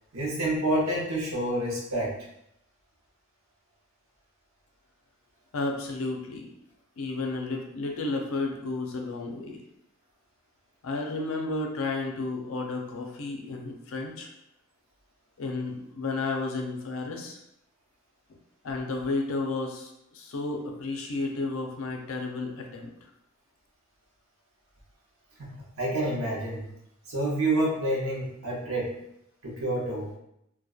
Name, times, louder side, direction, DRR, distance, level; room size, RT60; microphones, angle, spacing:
voice 1, 0.1-2.1 25.4-26.7 27.1-28.9 29.4-30.1, right 1 dB, 90° right, -3 dB, 0.8 m, -28 dB
voice 2, 5.5-6.5 7.0-9.6 10.8-14.3 15.4-17.4 18.6-22.9, left 3 dB, 80° left, 2 dB, 0.5 m, -32 dB
2.7 x 2.2 x 2.3 m, 0.78 s
head